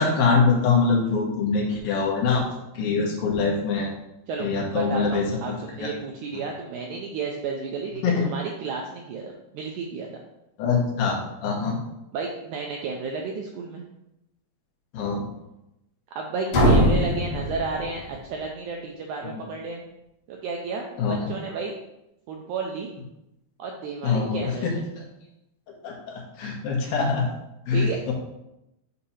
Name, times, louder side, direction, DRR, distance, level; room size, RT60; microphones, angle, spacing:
voice 1, 0.0-2.4 2.7-3.9 4.4-5.9 8.0-8.2 10.6-11.8 14.9-15.2 19.2-19.4 21.0-21.3 24.0-25.0 25.8-27.3 27.7-28.1, left 4 dB, 85° left, -2 dB, 2.8 m, -24 dB
voice 2, 4.3-10.2 12.1-13.8 16.2-19.8 20.3-20.9 21.3-21.7 22.3-22.9 23.6-24.8 27.7-28.1, right 4 dB, 80° right, 1 dB, 1.7 m, -32 dB
sound 1, 16.5-18.4, equal, 65° left, 1.2 m, -21 dB
8.4 x 2.8 x 5.5 m, 0.88 s
omnidirectional pair, 4.2 m